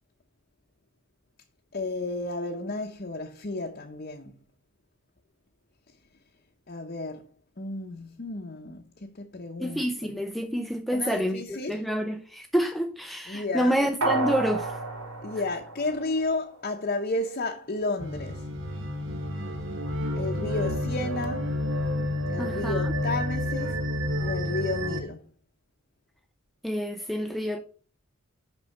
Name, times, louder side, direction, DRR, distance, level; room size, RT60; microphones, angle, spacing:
voice 1, 1.7-4.3 6.7-7.3 7.6-10.1 10.9-11.8 13.3-13.8 15.2-18.4 20.2-21.5 22.3-23.7 24.2-25.2, left 2 dB, 40° left, 0.7 m, -32 dB
voice 2, 9.6-14.7 22.4-22.9 26.6-27.6, equal, ahead, 0.4 m, -28 dB
sound 1, 14.0-16.6 16.9-17.0, right 3 dB, 75° right, 3.3 m, -31 dB
sound 2, 18.0-25.0, left 1 dB, 60° right, 1.0 m, -30 dB
6.4 x 5.4 x 5.2 m
head